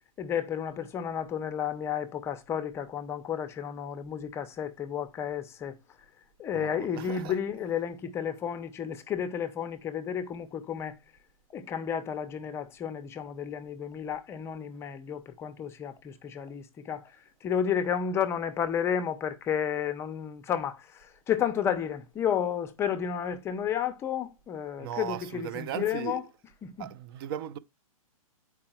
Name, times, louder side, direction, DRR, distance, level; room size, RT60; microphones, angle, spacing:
voice 1, 0.2-5.8 6.4-11.0 11.5-17.1 17.4-26.2 26.6-26.9, left 8 dB, 15° left, 0.6 m, -32 dB
voice 2, 6.5-7.4 24.8-26.2 26.8-27.6, right 10 dB, 40° right, 0.6 m, -37 dB
8.7 x 4.7 x 4.3 m
hypercardioid pair, 150°, 19 cm